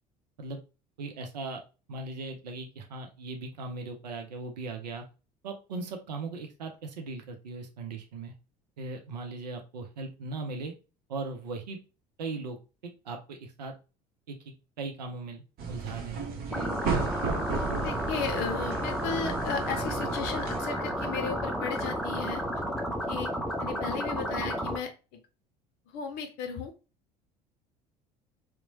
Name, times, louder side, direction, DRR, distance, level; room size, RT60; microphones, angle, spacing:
voice 1, 1.0-1.6 1.9-5.1 5.4-8.3 8.8-10.7 11.1-11.8 12.2-13.7 14.3-16.2, right 3 dB, 80° right, 4 dB, 0.5 m, -38 dB
sound 1, 15.6-20.6, right 4 dB, 45° right, 0.8 m, -34 dB
sound 2, 16.5-24.8, equal, ahead, 0.6 m, -32 dB
voice 2, 17.8-22.4 23.1-25.2 25.9-26.7, left 5 dB, 50° left, 5 dB, 0.6 m, -35 dB
2.9 x 2.0 x 2.7 m, 0.31 s
figure-of-eight pair, 65°, 21 cm